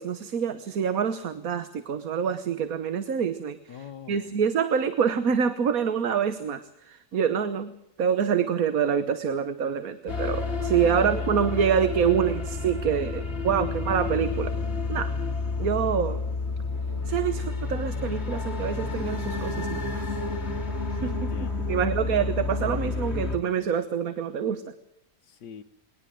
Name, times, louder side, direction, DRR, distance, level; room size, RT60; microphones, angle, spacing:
voice 1, 0.0-7.7 8.0-14.5 14.9-15.1 15.6-16.2 17.1-20.0 21.0-21.1 21.7-24.7, right 7 dB, 60° right, 12 dB, 1.5 m, -26 dB
voice 2, 3.7-4.3 10.8-11.3 21.0-21.8 25.3-25.6, left 7 dB, 80° left, 3 dB, 1.6 m, -43 dB
sound 1, 10.1-23.4, left 3 dB, 40° left, 2.5 m, -30 dB
22.0 x 18.5 x 7.7 m, 0.79 s
omnidirectional pair, 1.8 m